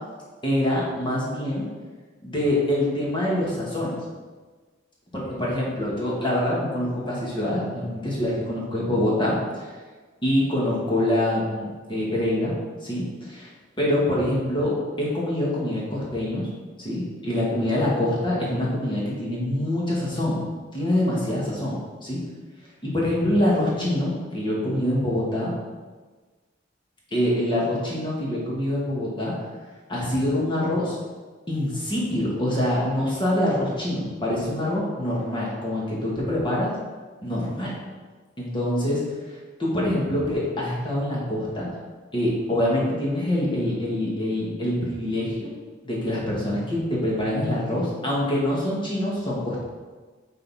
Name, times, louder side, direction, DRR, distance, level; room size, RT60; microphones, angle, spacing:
voice 1, 0.4-1.6 2.2-3.9 5.1-9.6 10.2-12.5 12.8-13.5 13.8-16.5 16.8-20.4 20.7-22.2 22.8-25.5 27.1-29.3 29.9-31.0 31.5-36.7 37.2-37.7 38.4-41.7 42.1-45.5 45.8-49.6, left 1 dB, 25° left, -5 dB, 1.8 m, -25 dB
7.6 x 4.1 x 4.2 m, 1.4 s
head